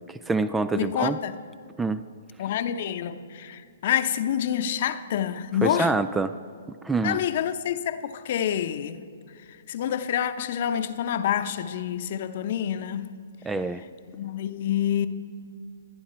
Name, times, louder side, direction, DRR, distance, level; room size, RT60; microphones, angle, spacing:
voice 1, 0.1-1.2 1.8-2.0 5.6-6.4 6.8-7.2 13.5-13.8, right 3 dB, 10° right, 0.4 m, -26 dB
voice 2, 0.7-1.4 2.4-5.9 7.0-9.0 9.7-13.1 14.1-15.1, left 10 dB, 50° left, 0.9 m, -27 dB
28.0 x 9.8 x 4.3 m
hypercardioid pair, 130°, 0 cm